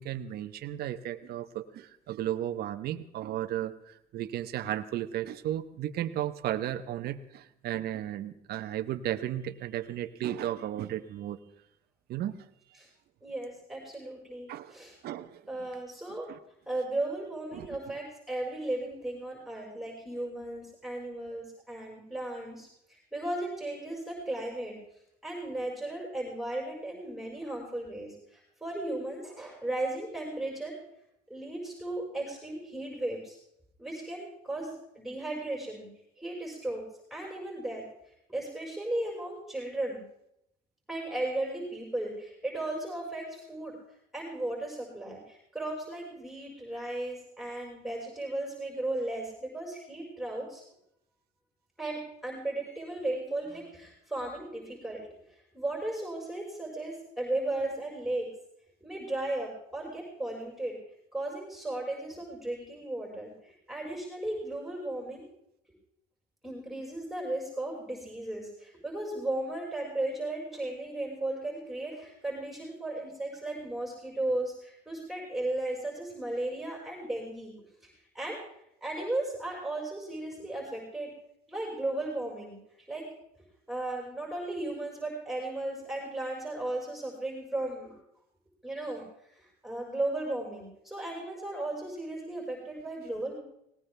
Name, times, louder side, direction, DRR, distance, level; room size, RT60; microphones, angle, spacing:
voice 1, 0.0-11.4 12.1-12.4 14.5-14.7 15.0-15.4 16.3-16.4 17.5-17.8, right 12 dB, 70° right, 9 dB, 1.0 m, -34 dB
voice 2, 13.2-15.0 15.5-16.3 16.7-24.8 25.2-30.8 31.3-33.4 33.8-35.9 36.2-36.8 37.1-37.8 38.3-40.0 40.9-43.8 44.1-50.6 51.8-58.3 58.8-60.8 61.1-65.3 66.4-77.5 77.8-78.4 78.8-81.1 81.5-83.1 83.7-88.0 88.6-89.0 89.3-93.4, right 1 dB, ahead, -2 dB, 5.4 m, -35 dB
19.0 x 19.0 x 3.4 m, 0.77 s
cardioid pair, 110°, 17 cm